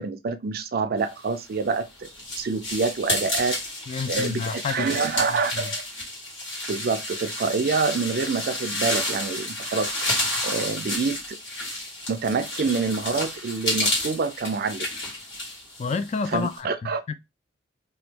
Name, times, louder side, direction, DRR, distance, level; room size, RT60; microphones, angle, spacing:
voice 1, 0.0-2.1 2.4-3.6 4.1-5.7 6.7-10.0 10.4-11.4 12.1-14.9 16.3-17.0, right 4 dB, 55° right, 0.4 m, -26 dB
sound 1, 1.4-16.6, left 1 dB, 70° left, 1.7 m, -30 dB
voice 2, 3.9-4.9 5.2-5.7 15.8-16.7 17.1-17.2, left 5 dB, 35° left, 0.3 m, -29 dB
2.9 x 2.3 x 3.3 m
head